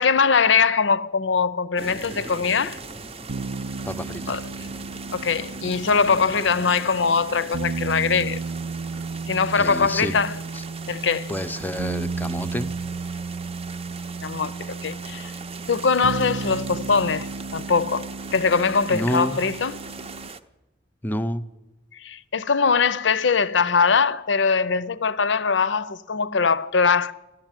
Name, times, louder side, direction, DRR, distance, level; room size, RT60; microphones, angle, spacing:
voice 1, 0.0-2.8 4.3-4.4 5.1-8.4 9.3-10.3 10.9-11.3 14.2-15.3 15.7-19.8 22.0-27.1, left 5 dB, 70° left, 0.6 m, -22 dB
sound 1, 1.8-20.4, right 4 dB, 30° right, 0.7 m, -40 dB
sound 2, 3.3-20.3, right 4 dB, 80° right, 0.6 m, -33 dB
voice 2, 3.9-4.3 9.6-10.2 10.5-10.6 11.3-12.7 18.9-19.4 21.0-21.5, equal, 10° left, 0.6 m, -28 dB
14.0 x 11.5 x 9.0 m
head